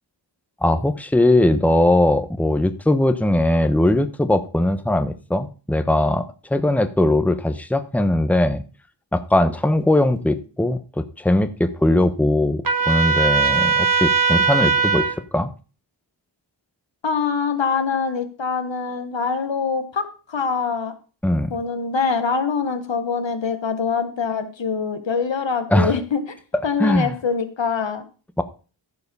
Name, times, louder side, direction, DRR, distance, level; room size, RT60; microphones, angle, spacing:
voice 1, 0.6-8.6 9.1-15.5 21.2-21.5 25.7-26.0 26.8-27.1 28.4-28.5, left 1 dB, 5° left, 9 dB, 1.1 m, -20 dB
Trumpet, 12.6-15.2, right 5 dB, 50° right, 1.6 m, -19 dB
voice 2, 17.0-20.9 21.5-26.4 26.6-28.0, left 5 dB, 75° left, 8 dB, 1.5 m, -24 dB
14.0 x 4.9 x 5.5 m, 0.36 s
cardioid pair, 45°, 45 cm